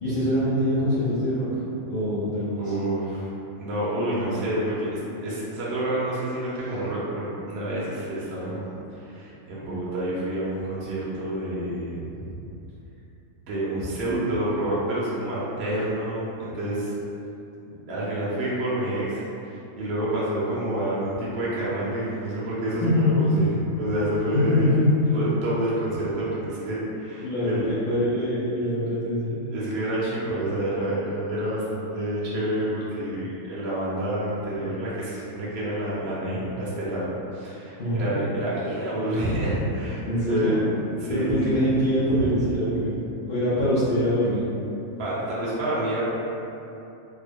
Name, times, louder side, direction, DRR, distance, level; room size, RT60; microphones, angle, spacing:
voice 1, 0.0-2.7 22.8-23.1 24.4-24.9 27.2-29.4 37.8-38.1 40.1-40.6 41.1-44.5, equal, 50° left, -11 dB, 0.6 m, -24 dB
voice 2, 2.6-3.3 3.6-12.4 13.4-16.9 17.6-24.7 25.0-27.7 28.6-28.8 29.5-37.1 37.3-40.6 40.9-41.6 42.1-42.4 43.6-43.7 45.0-46.0, right 1 dB, 55° right, -8 dB, 0.9 m, -28 dB
3.5 x 2.0 x 3.4 m, 2.8 s
omnidirectional pair, 1.4 m